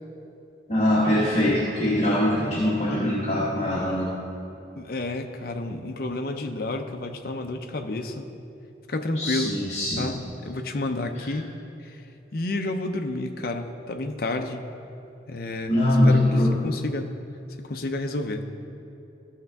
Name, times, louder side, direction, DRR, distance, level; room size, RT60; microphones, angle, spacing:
voice 1, 0.7-4.1 9.2-10.1 11.2-11.3 15.7-16.5, left 1 dB, 35° left, -7 dB, 1.2 m, -22 dB
voice 2, 4.8-8.3 8.9-9.6 10.0-11.5 11.8-12.0 12.3-14.6 15.3-15.7 16.0-16.2 16.6-17.1 17.6-18.4, left 2 dB, 55° left, 5 dB, 0.6 m, -30 dB
14.5 x 6.7 x 3.5 m, 2.8 s
head